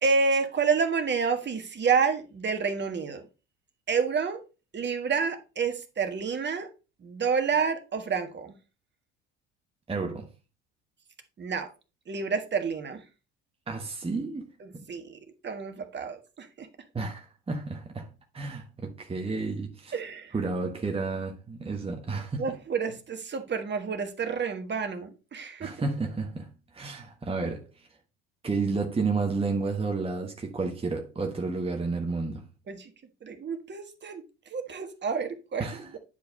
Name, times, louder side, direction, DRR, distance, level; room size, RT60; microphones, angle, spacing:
voice 1, 0.0-3.2 3.9-4.4 4.7-6.7 7.0-8.5 11.4-11.7 12.1-13.0 14.9-16.7 19.9-20.3 22.4-25.7 32.7-32.9 33.2-34.2 34.5-35.6, right 5 dB, 30° right, 1.6 m, -29 dB
voice 2, 9.9-10.3 13.7-14.5 14.7-14.9 16.9-18.1 18.3-20.0 20.3-22.5 25.6-27.9 28.4-32.5 35.6-36.0, right 3 dB, 15° right, 1.3 m, -31 dB
10.0 x 4.7 x 4.1 m
figure-of-eight pair, 60°, 33 cm